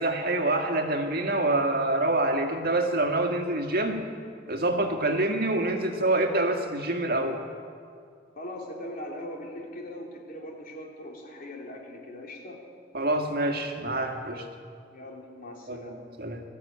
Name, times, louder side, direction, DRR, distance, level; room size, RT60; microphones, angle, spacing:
voice 1, 0.0-4.0 4.5-7.4 12.9-14.5 15.7-15.8 16.2-16.4, right 2 dB, 55° right, 4 dB, 2.0 m, -26 dB
voice 2, 8.3-12.6 14.9-16.0, left 1 dB, 50° left, 0 dB, 3.2 m, -40 dB
21.0 x 14.0 x 8.9 m, 2.3 s
head